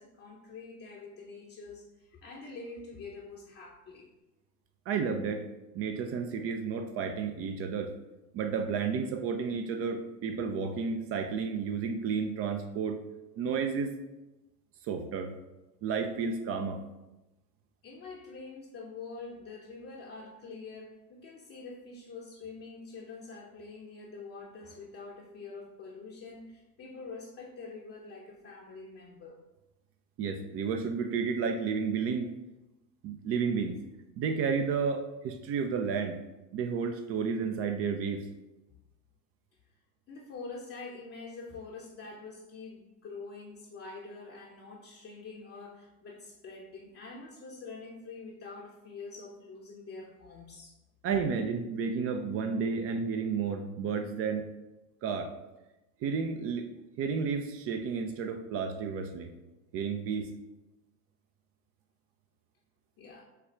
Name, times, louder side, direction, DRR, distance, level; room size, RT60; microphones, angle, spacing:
voice 1, 0.0-4.1 17.8-29.4 40.1-50.7 63.0-63.2, left 4 dB, 30° left, -3 dB, 0.7 m, -45 dB
voice 2, 4.9-5.5 5.7-7.9 8.3-13.0 13.4-13.9 14.8-15.4 15.8-16.8 30.2-32.3 33.0-33.8 34.2-36.2 36.5-38.3 51.0-54.5 55.0-55.3 56.0-56.7 57.0-59.3 59.7-60.3, right 5 dB, 30° right, 7 dB, 0.4 m, -31 dB
6.7 x 2.3 x 3.3 m, 0.99 s
hypercardioid pair, 85°, 48 cm